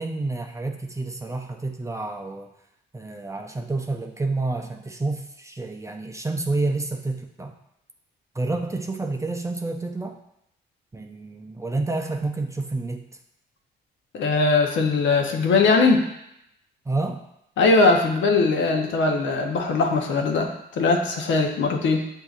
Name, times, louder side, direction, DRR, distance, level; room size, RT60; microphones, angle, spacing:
voice 1, 0.0-2.5 2.9-7.5 8.4-10.1 10.9-13.1 16.9-17.2, right 2 dB, 15° right, 3 dB, 0.4 m, -29 dB
voice 2, 14.1-16.0 17.6-22.1, left 3 dB, 70° left, 3 dB, 0.7 m, -20 dB
7.6 x 2.7 x 2.4 m, 0.80 s
cardioid pair, 90°, 20 cm